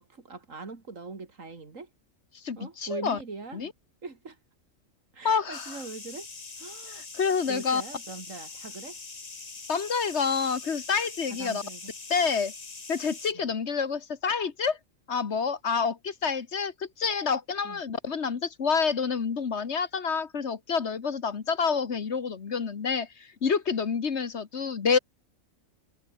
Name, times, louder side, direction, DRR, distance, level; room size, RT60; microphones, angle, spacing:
voice 1, 0.0-1.9 2.6-3.6 4.0-4.4 5.1-6.3 6.6-7.0 7.5-9.0 11.3-11.9 13.3-13.5 17.6-17.8, right 4 dB, 75° right, 3.1 m, -41 dB
voice 2, 2.4-3.2 3.5-3.7 5.2-5.8 7.1-7.8 9.7-11.6 12.1-12.5 12.9-14.8 15.1-25.0, left 5 dB, 55° left, 1.6 m, -28 dB
sound 1, 5.5-13.3, left 4 dB, 30° left, 1.4 m, -43 dB
omnidirectional pair, 1.4 m